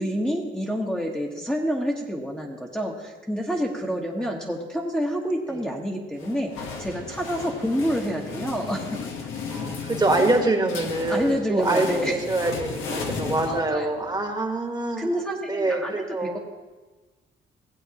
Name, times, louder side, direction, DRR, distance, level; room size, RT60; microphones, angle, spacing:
voice 1, 0.0-6.5 6.8-9.0 11.1-12.1 13.4-14.0 15.0-16.4, equal, 5° left, -4 dB, 1.2 m, -28 dB
sound 1, 6.2-14.1, left 4 dB, 85° left, 1.2 m, -34 dB
voice 2, 9.5-15.2 15.5-16.4, right 2 dB, 20° right, 3 dB, 1.4 m, -25 dB
16.0 x 8.0 x 2.9 m, 1.2 s
cardioid pair, 90°, 20 cm